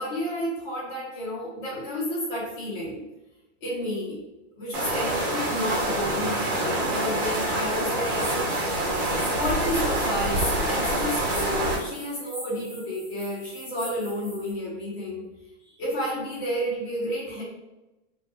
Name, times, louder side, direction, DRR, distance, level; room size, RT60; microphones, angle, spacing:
voice 1, 0.0-3.0 3.6-4.2 4.6-8.3 9.3-15.3 15.8-17.4, equal, 45° left, -8 dB, 0.9 m, -31 dB
sound 1, 4.7-11.8, right 1 dB, 20° right, 0.4 m, -26 dB
sound 2, 8.0-14.5, equal, 5° left, 0.8 m, -42 dB
2.3 x 2.3 x 2.8 m, 1.0 s
hypercardioid pair, 150°, 37 cm